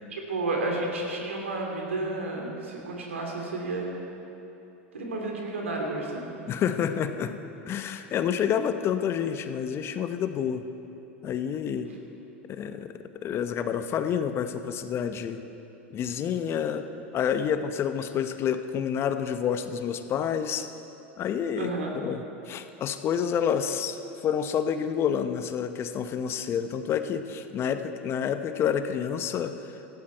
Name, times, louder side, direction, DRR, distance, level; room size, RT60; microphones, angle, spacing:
voice 1, 0.1-3.9 4.9-6.3 21.6-22.0, right 2 dB, 80° right, 0 dB, 2.9 m, -31 dB
voice 2, 6.5-7.4 7.7-10.6 11.2-11.9 12.5-15.4 15.9-16.9 17.1-20.7 21.2-29.5, left 8 dB, 40° left, 9 dB, 0.9 m, -29 dB
18.0 x 14.5 x 4.5 m, 3.0 s
hypercardioid pair, 90°, 7 cm